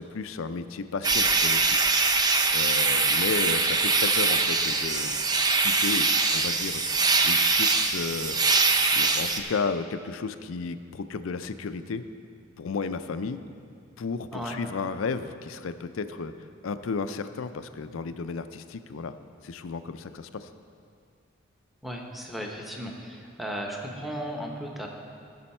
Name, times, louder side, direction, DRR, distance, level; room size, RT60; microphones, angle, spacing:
voice 1, 0.0-1.8 2.5-5.2 5.6-6.1 6.3-6.8 7.2-8.4 8.9-12.0 12.6-13.4 14.0-16.3 16.6-19.1 19.4-20.5, left 4 dB, 80° left, 11 dB, 0.5 m, -33 dB
sound 1, 1.0-9.4, right 3 dB, 20° right, 0.4 m, -23 dB
voice 2, 21.8-24.9, equal, ahead, 0 dB, 0.9 m, -35 dB
15.5 x 6.3 x 4.4 m, 2.4 s
head